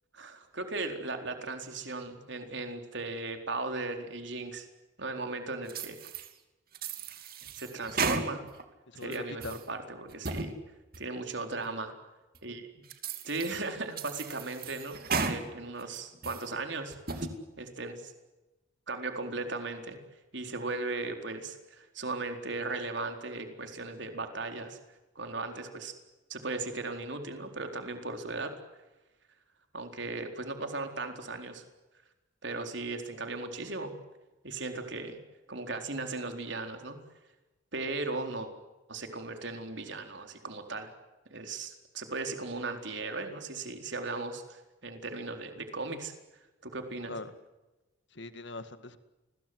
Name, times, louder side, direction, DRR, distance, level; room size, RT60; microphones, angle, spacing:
voice 1, 0.1-4.7 5.0-6.0 7.6-8.4 9.0-10.6 11.0-11.9 12.4-12.7 13.2-16.9 17.6-18.1 18.9-20.0 20.3-24.8 25.2-25.9 26.3-28.5 29.7-31.6 32.4-33.9 34.4-35.2 35.5-37.0 37.7-38.5 38.9-40.9 41.3-46.1 46.6-47.1, right 3 dB, 60° right, 5 dB, 4.2 m, -37 dB
sound 1, 5.7-6.3 6.7-8.6 9.0-9.6 10.1-10.5 10.9-11.0 11.6-11.7 12.4-12.5 12.9-13.6 14.0-15.4 15.8-16.5 16.9-17.3, right 4 dB, 45° right, 2.9 m, -35 dB
voice 2, 8.9-9.5 47.1-47.3 48.1-49.0, left 2 dB, 60° left, 11 dB, 2.1 m, -41 dB
29.5 x 22.0 x 8.1 m, 1.1 s
head